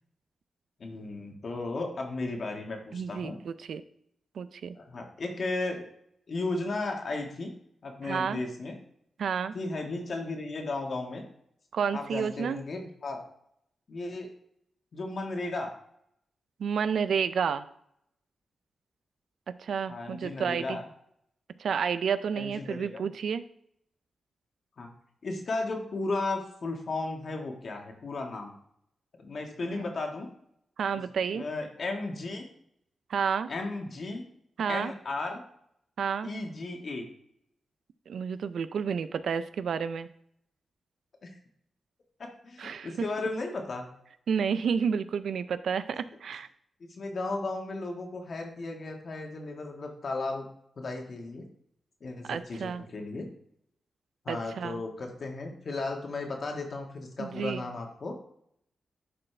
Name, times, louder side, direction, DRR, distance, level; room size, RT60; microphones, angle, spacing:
voice 1, 0.8-3.3 4.7-5.9 6.3-7.5 7.8-8.7 9.5-11.2 11.9-13.3 13.9-14.3 14.9-15.7 19.9-20.8 22.3-23.0 24.8-24.9 25.2-28.5 29.2-30.3 31.3-32.5 33.5-34.2 34.7-35.4 36.2-37.0 41.2-41.3 42.2-43.8 46.9-50.4 50.8-51.4 52.0-53.3 54.2-58.1, left 2 dB, 60° left, 2 dB, 1.6 m, -35 dB
voice 2, 2.9-3.8 4.4-4.8 8.0-8.4 9.2-9.6 11.7-12.6 16.6-17.7 19.6-20.8 21.6-23.4 29.7-29.8 30.8-31.4 33.1-33.5 34.6-34.9 36.0-36.3 38.1-40.1 42.6-43.1 44.3-46.5 52.2-52.8 54.3-54.8 57.2-57.7, right 6 dB, 80° right, 13 dB, 0.4 m, -30 dB
11.5 x 4.3 x 3.3 m, 0.71 s
cardioid pair, 75°, 0 cm